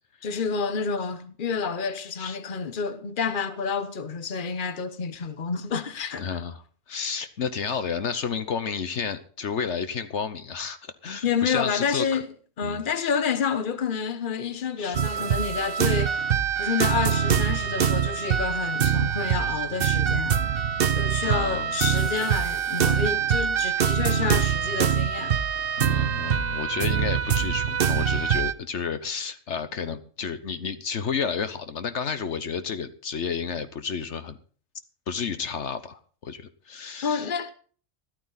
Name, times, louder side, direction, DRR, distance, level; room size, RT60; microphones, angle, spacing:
voice 1, 0.2-6.3 11.2-16.3 16.6-20.4 21.0-25.3 37.0-37.5, left 6 dB, 45° left, 1.2 m, -29 dB
voice 2, 6.2-6.6 6.9-12.2 12.6-12.8 14.8-15.0 21.2-21.8 25.8-34.4 35.1-37.3, left 6 dB, 70° left, 1.3 m, -31 dB
sound 1, 14.9-28.5, right 8 dB, 55° right, 0.9 m, -24 dB
14.0 x 13.5 x 4.1 m
omnidirectional pair, 1.3 m